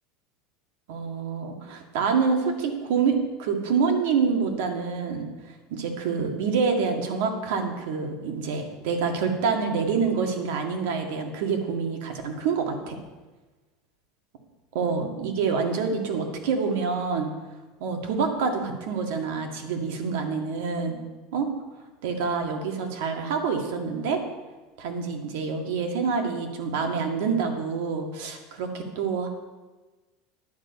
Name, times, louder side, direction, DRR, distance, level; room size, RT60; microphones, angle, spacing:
voice 1, 0.9-5.3 5.7-13.0 14.7-17.3 17.8-21.0 21.3-21.5 22.0-24.2 24.8-29.3, right 5 dB, 80° right, 4 dB, 1.9 m, -27 dB
10.5 x 8.8 x 5.4 m, 1.2 s
supercardioid pair, 150°, 0 cm